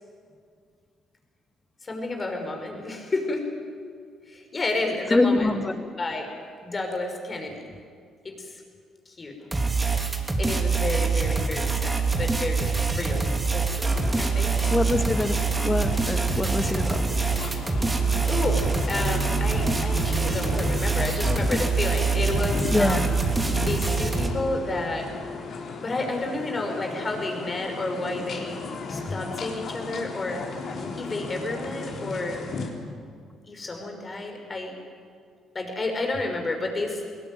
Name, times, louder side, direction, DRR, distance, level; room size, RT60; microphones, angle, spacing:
voice 1, 1.8-3.5 4.3-5.6 6.0-6.3 6.6-7.6 8.2-8.6 9.1-9.3 10.3-13.3 13.5-14.6 18.3-23.2 23.6-25.1 25.8-28.6 28.9-30.4 31.0-32.5 33.4-34.7 35.5-37.0, left 2 dB, 35° left, 3 dB, 5.6 m, -31 dB
voice 2, 5.1-5.7 14.7-15.4 15.6-17.0 22.7-23.1, left 2 dB, 20° left, 8 dB, 1.9 m, -24 dB
sound 1, 9.5-24.3, right 4 dB, 20° right, 3.2 m, -25 dB
sound 2, 13.9-32.7, left 3 dB, 60° left, 3.6 m, -35 dB
21.0 x 18.0 x 9.4 m, 2.2 s
supercardioid pair, 70°, 0 cm